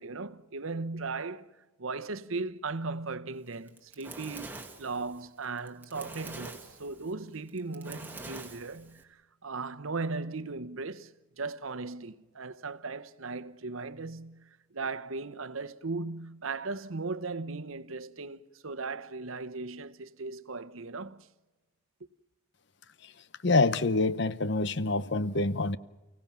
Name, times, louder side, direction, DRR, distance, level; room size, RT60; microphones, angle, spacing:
voice 1, 0.0-1.5 1.8-21.3, right 3 dB, 80° right, 1.0 m, -37 dB
Fire, 3.5-9.0, right 2 dB, 10° right, 2.0 m, -45 dB
voice 2, 23.4-25.8, left 3 dB, 55° left, 0.8 m, -26 dB
30.0 x 17.0 x 7.4 m
head